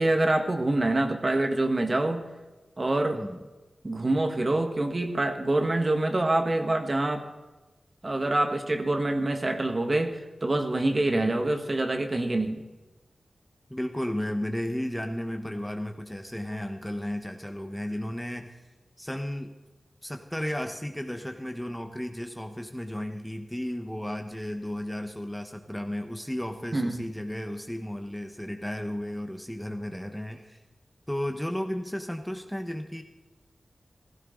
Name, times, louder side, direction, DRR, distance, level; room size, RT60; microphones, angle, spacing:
voice 1, 0.0-2.3 2.8-3.2 3.8-7.2 8.0-12.6 26.7-27.0, right 2 dB, 35° right, 6 dB, 1.5 m, -26 dB
voice 2, 11.1-11.4 13.7-18.6 19.0-19.5 20.0-30.6 31.1-33.0, left 1 dB, 5° left, 5 dB, 1.1 m, -34 dB
16.0 x 15.5 x 3.9 m, 1.2 s
wide cardioid pair, 95°, 0 cm